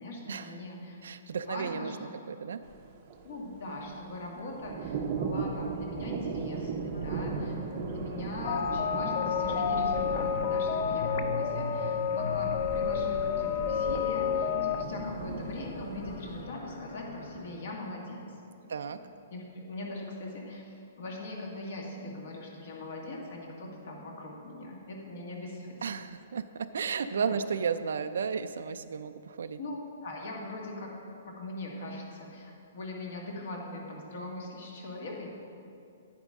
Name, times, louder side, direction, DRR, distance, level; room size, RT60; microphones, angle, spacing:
voice 1, 0.0-1.0 1.4-2.2 3.2-7.6 7.9-18.2 18.6-18.8 19.3-25.8 26.8-27.4 29.6-30.9 31.3-35.3, left 2 dB, 55° left, -1 dB, 1.8 m, -41 dB
voice 2, 1.0-1.9 2.3-2.6 18.7-19.0 25.8-29.6, right 6 dB, 80° right, 10 dB, 0.3 m, -33 dB
sound 1, 2.6-16.4, right 5 dB, 30° right, 0.6 m, -38 dB
sound 2, 6.9-17.5, left 3 dB, 85° left, 1.2 m, -42 dB
sound 3, 8.4-14.8, left 7 dB, 35° left, 0.4 m, -30 dB
9.7 x 9.1 x 3.6 m, 2.6 s
hypercardioid pair, 175°, 0 cm